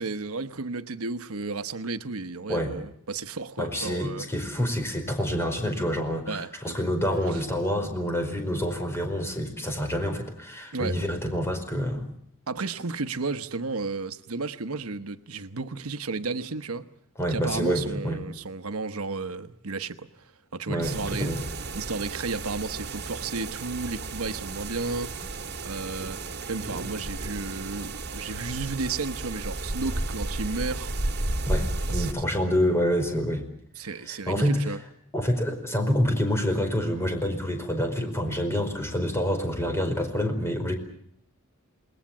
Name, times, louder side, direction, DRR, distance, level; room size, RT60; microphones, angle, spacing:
voice 1, 0.0-4.3 6.3-6.8 10.7-11.0 12.5-16.9 17.3-21.3 21.7-25.3 25.6-26.2 26.5-31.0 31.9-32.1 33.8-34.8, right 3 dB, 90° right, 1.1 m, -33 dB
voice 2, 3.6-12.1 17.2-18.2 20.7-21.4 31.4-33.5 34.1-34.7 35.1-40.7, equal, 10° left, 4.8 m, -27 dB
sound 1, 20.8-32.1, right 2 dB, 50° right, 2.2 m, -33 dB
28.5 x 20.5 x 7.3 m
head